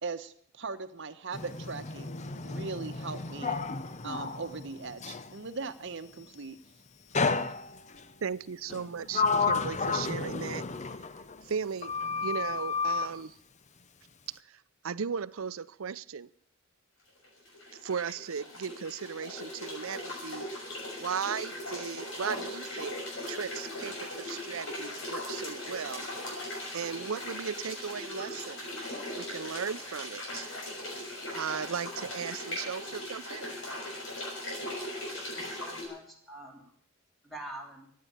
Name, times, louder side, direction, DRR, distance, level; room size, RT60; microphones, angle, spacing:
voice 1, 0.0-2.1 2.4-3.6 4.0-6.6, right 4 dB, 60° right, 8 dB, 1.1 m, -39 dB
Sliding door, 1.3-5.3 7.1-8.0 8.7-11.6 11.8-13.1, left 4 dB, 35° left, 0.7 m, -32 dB
voice 2, 8.2-10.6 11.4-11.9 12.2-13.4 14.3-16.3 17.7-20.5 21.0-23.0 23.3-26.1 26.4-28.6 29.1-30.5 31.3-33.5, right 6 dB, 85° right, 17 dB, 0.6 m, -37 dB
sound 1, 17.2-35.9, left 1 dB, 65° left, 6.2 m, -39 dB
voice 3, 35.3-36.7 37.2-37.9, right 1 dB, ahead, 0 dB, 3.5 m, -45 dB
14.5 x 9.6 x 8.8 m, 0.65 s
head